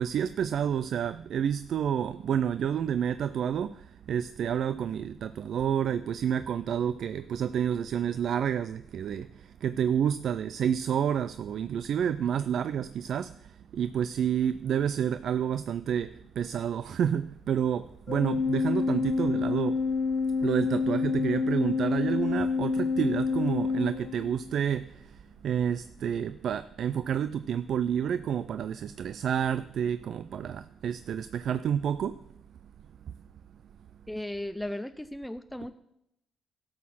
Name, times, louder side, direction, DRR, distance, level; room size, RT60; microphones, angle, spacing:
voice 1, 0.0-19.8 20.4-32.2 33.1-33.2, right 8 dB, 65° right, 0.3 m, -29 dB
Organ, 18.1-24.6, left 4 dB, 60° left, 0.7 m, -28 dB
voice 2, 34.1-35.7, left 1 dB, 5° left, 0.4 m, -36 dB
12.5 x 6.5 x 5.6 m
cardioid pair, 90°, 0 cm